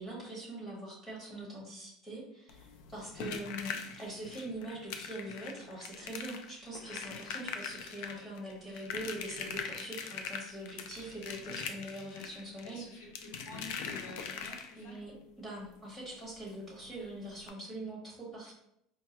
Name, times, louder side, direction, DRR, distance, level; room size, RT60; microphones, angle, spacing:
voice 1, 0.0-12.8 14.8-18.5, right 1 dB, 10° left, -5 dB, 1.2 m, -43 dB
sound 1, 2.5-15.0 16.5-16.6 16.8-17.0 17.4-17.5, left 6 dB, 70° left, 0.4 m, -42 dB
voice 2, 12.6-15.0, left 2 dB, 85° left, -1 dB, 1.3 m, -49 dB
4.5 x 2.2 x 2.9 m, 0.75 s
cardioid pair, 160°, 0 cm